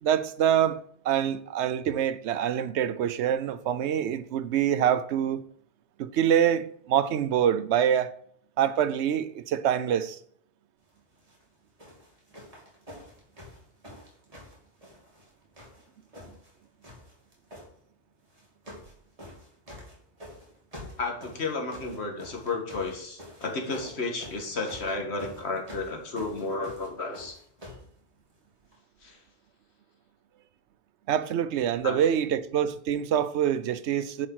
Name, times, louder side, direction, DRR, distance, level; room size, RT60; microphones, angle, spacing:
voice 1, 0.0-5.4 6.0-8.1 8.6-10.2 31.1-34.3, right 9 dB, 85° right, 0.9 m, -25 dB
sound 1, 11.2-11.4 11.8-15.3 15.5-16.5 16.8-17.7 18.3-18.9 19.2-27.9 28.7-28.8, left 1 dB, 35° right, 2.9 m, -47 dB
voice 2, 21.0-27.4 29.0-29.2 31.8-32.0, left 3 dB, 75° left, 1.8 m, -32 dB
10.0 x 4.9 x 4.6 m
omnidirectional pair, 1.1 m